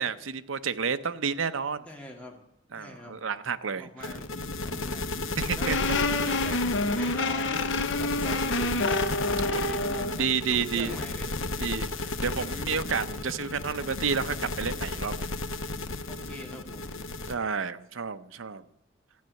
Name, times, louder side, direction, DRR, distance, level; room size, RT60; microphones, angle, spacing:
voice 1, 0.0-1.8 2.7-3.9 5.4-5.8 6.3-6.4 9.4-9.6 10.1-11.0 11.6-15.3 17.3-18.6, right 6 dB, 80° right, 11 dB, 0.8 m, -30 dB
voice 2, 1.9-2.4 2.7-3.2 3.8-6.1 6.4-6.6 6.9-7.7 8.0-11.3 16.1-17.0, left 1 dB, 5° left, 0 dB, 2.4 m, -43 dB
sound 1, 4.0-17.3, left 2 dB, 80° left, 1.0 m, -34 dB
sound 2, 5.6-10.1, left 2 dB, 60° left, 0.9 m, -28 dB
13.5 x 9.6 x 7.7 m, 0.84 s
head